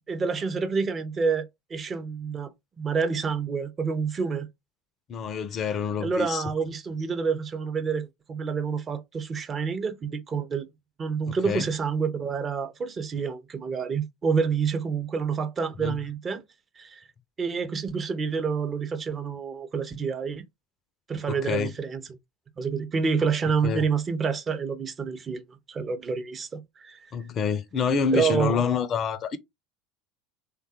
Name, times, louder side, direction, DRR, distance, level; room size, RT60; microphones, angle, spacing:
voice 1, 0.0-2.5 2.8-4.5 6.0-10.7 11.0-16.4 16.8-17.0 17.4-20.4 21.1-22.2 22.6-27.0 28.1-28.6, right 5 dB, 30° right, 0.5 m, -28 dB
voice 2, 5.1-6.4 11.3-11.7 15.8-16.0 21.3-21.7 23.6-23.9 27.1-29.4, left 6 dB, 35° left, 0.4 m, -27 dB
3.2 x 2.2 x 2.7 m
figure-of-eight pair, 75°, 0 cm